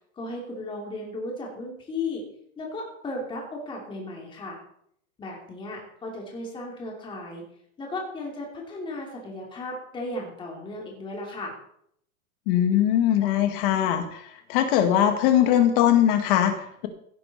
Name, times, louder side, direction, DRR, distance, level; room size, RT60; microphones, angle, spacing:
voice 1, 0.1-2.2 2.6-4.6 5.2-7.4 7.8-11.5, left 2 dB, 10° left, -1 dB, 2.7 m, -35 dB
voice 2, 12.5-16.9, left 10 dB, 40° left, 7 dB, 1.9 m, -21 dB
16.0 x 10.5 x 4.2 m, 0.70 s
supercardioid pair, 175°, 43 cm